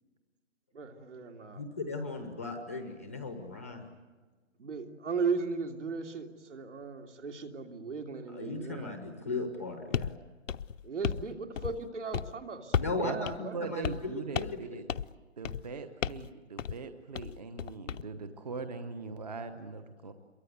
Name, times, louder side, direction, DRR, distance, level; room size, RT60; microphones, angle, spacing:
voice 1, 0.7-1.6 4.6-8.9 10.8-13.6, right 5 dB, 65° right, 4 dB, 3.0 m, -37 dB
voice 2, 1.5-3.9 8.3-10.2 12.8-14.9, left 3 dB, 10° left, 5 dB, 0.8 m, -37 dB
sound 1, 9.9-10.1 10.5-11.3 11.6-11.9 12.1-12.3 12.7-13.0 13.3-13.4 13.8-14.1 14.3-14.6 14.9-15.1 15.4-15.7 16.0-16.3 16.6-16.8 17.1-18.0, left 8 dB, 70° left, 0.8 m, -33 dB
voice 3, 13.0-14.8 15.4-20.1, right 4 dB, 30° right, 8 dB, 1.1 m, -41 dB
28.0 x 23.0 x 8.2 m, 1.4 s
hypercardioid pair, 175°, 39 cm